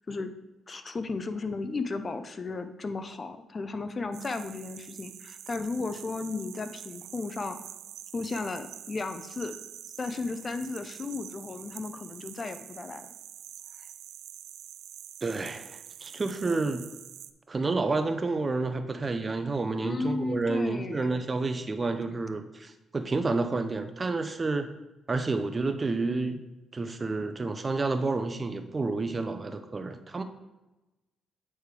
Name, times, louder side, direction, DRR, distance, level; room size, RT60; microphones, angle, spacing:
voice 1, 0.7-7.6 8.1-9.6 10.0-13.1 16.4-16.6 19.8-21.2, left 3 dB, 35° left, 9 dB, 0.5 m, -34 dB
sound 1, 4.1-17.3, right 11 dB, 80° right, 0.3 m, -46 dB
voice 2, 15.2-16.8 17.5-24.7 25.1-26.4 26.7-30.2, right 3 dB, 30° right, 8 dB, 0.5 m, -30 dB
8.5 x 3.3 x 4.7 m, 1.0 s
cardioid pair, 90°, 0 cm